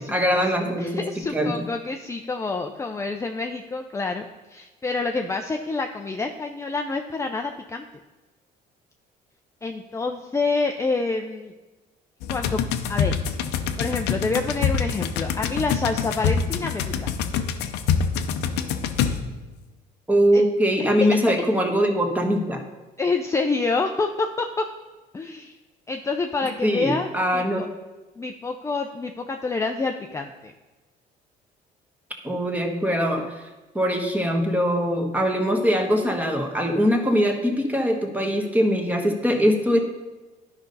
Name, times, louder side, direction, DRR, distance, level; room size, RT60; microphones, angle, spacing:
voice 1, 0.0-1.0 1.3-1.5 20.1-22.6 26.6-27.7 32.2-33.3 33.7-39.8, equal, 10° right, 3 dB, 1.3 m, -22 dB
voice 2, 0.8-7.8 9.6-11.5 12.3-12.6 12.9-13.1 13.8-17.1 20.3-20.4 23.0-24.7 25.1-25.5 25.9-27.7 28.2-30.5, left 3 dB, 15° left, 4 dB, 0.5 m, -27 dB
sound 1, 12.2-19.5, left 7 dB, 90° left, 0.7 m, -26 dB
11.5 x 5.3 x 4.0 m, 1.2 s
cardioid pair, 110°, 17 cm